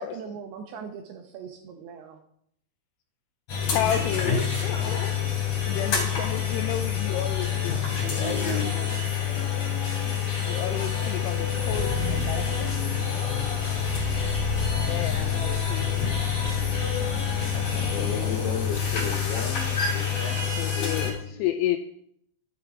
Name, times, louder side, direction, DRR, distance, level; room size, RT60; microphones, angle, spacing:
voice 1, 0.0-2.2, right 6 dB, 75° right, 5 dB, 2.4 m, -40 dB
sound 1, 3.5-21.1, left 7 dB, 40° left, 3.5 m, -27 dB
voice 2, 3.7-5.3 5.7-9.0 10.4-12.8 14.8-16.2 17.5-18.4 20.6-21.8, left 11 dB, 85° left, 7 dB, 2.5 m, -32 dB
voice 3, 17.9-21.4, left 6 dB, 70° left, 4 dB, 3.1 m, -35 dB
11.0 x 9.3 x 4.8 m, 0.70 s
omnidirectional pair, 5.4 m